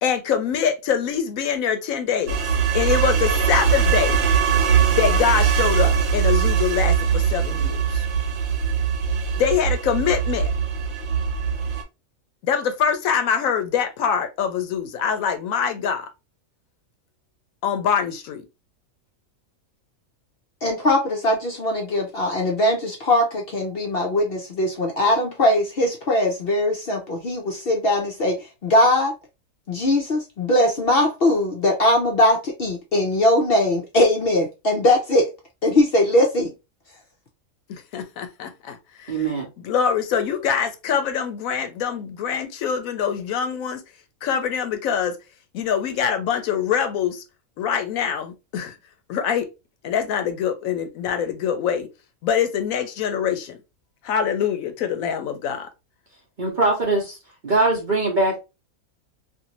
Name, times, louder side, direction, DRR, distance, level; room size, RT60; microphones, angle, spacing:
voice 1, 0.0-2.4 2.7-4.2 4.9-8.0 9.4-10.5 12.4-16.1 17.6-18.4 37.7-39.3 39.6-43.8 44.2-45.2 45.5-47.2 47.6-48.7 49.1-49.5 49.8-51.9 52.2-53.6 54.0-55.7, left 7 dB, 75° left, 1.0 m, -24 dB
sound 1, 2.3-11.8, right 7 dB, 75° right, 1.2 m, -21 dB
voice 2, 20.6-29.1 29.7-35.3 35.6-36.5, left 1 dB, 55° left, 0.7 m, -20 dB
voice 3, 39.1-39.5 56.4-57.2 57.4-58.4, right 2 dB, 45° right, 0.7 m, -21 dB
2.6 x 2.5 x 2.8 m
omnidirectional pair, 1.5 m